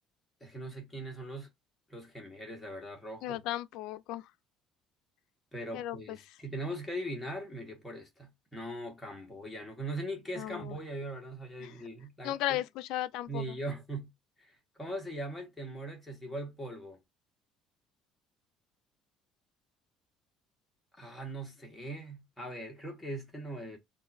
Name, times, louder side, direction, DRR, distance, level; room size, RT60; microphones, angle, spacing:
voice 1, 0.4-1.5 1.9-3.4 5.5-12.6 13.3-14.1 14.4-17.0 21.0-23.8, right 1 dB, 5° left, 1.3 m, -40 dB
voice 2, 3.2-4.3 5.7-6.2 10.4-10.8 11.6-11.8 12.2-13.6, left 14 dB, 75° left, 0.4 m, -35 dB
3.7 x 2.5 x 4.1 m
cardioid pair, 170°, 0 cm